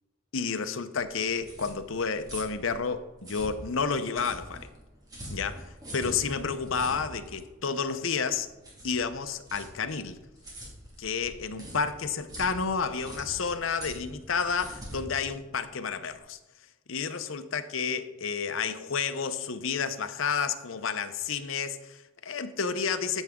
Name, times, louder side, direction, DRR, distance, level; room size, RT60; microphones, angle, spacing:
voice 1, 0.3-4.7 5.3-8.5 8.8-10.2 11.0-16.4 16.9-23.2, left 5 dB, 80° left, 0.7 m, -31 dB
sound 1, 1.1-16.2, equal, 20° right, 2.2 m, -44 dB
13.5 x 7.2 x 3.7 m
head